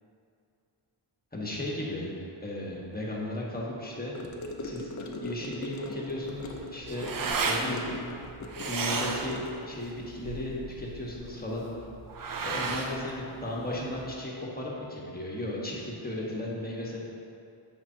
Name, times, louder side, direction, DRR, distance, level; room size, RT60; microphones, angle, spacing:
voice 1, 1.3-2.1 2.4-4.1 4.6-4.9 5.2-7.1 7.4-7.8 8.5-11.7 12.4-17.0, left 1 dB, 20° left, -4 dB, 1.3 m, -35 dB
Gurgling / Car passing by / Sink (filling or washing), 4.1-9.8, left 2 dB, 35° left, 0.6 m, -40 dB
sound 1, 6.2-14.1, right 4 dB, 45° right, 0.6 m, -34 dB
8.1 x 5.5 x 2.8 m, 2.6 s
cardioid pair, 90°, 49 cm